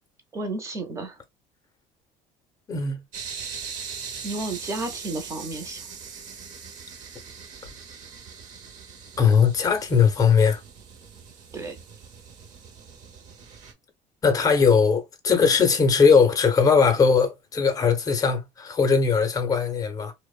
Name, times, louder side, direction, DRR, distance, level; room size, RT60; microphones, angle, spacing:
voice 1, 0.3-1.2 4.2-5.9 11.5-11.8, right 2 dB, 20° right, 0.6 m, -32 dB
voice 2, 2.7-3.0 9.2-10.6 14.2-20.1, left 5 dB, 20° left, 0.6 m, -20 dB
sound 1, 3.1-13.7, right 6 dB, 50° right, 0.7 m, -41 dB
2.9 x 2.0 x 2.3 m
cardioid pair, 150°, 16 cm